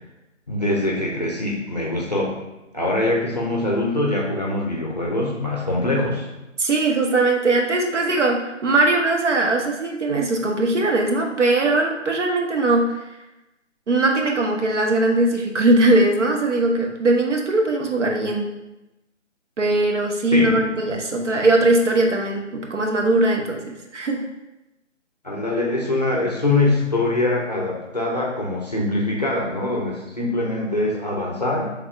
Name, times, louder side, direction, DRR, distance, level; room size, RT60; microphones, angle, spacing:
voice 1, 0.5-2.3 2.7-6.3 20.3-20.7 25.2-31.7, left 2 dB, 35° left, -2 dB, 0.5 m, -23 dB
voice 2, 6.6-13.0 13.9-18.5 19.6-24.2, right 2 dB, 70° right, 2 dB, 0.9 m, -20 dB
5.5 x 3.4 x 2.4 m, 0.96 s
figure-of-eight pair, 155°, 38 cm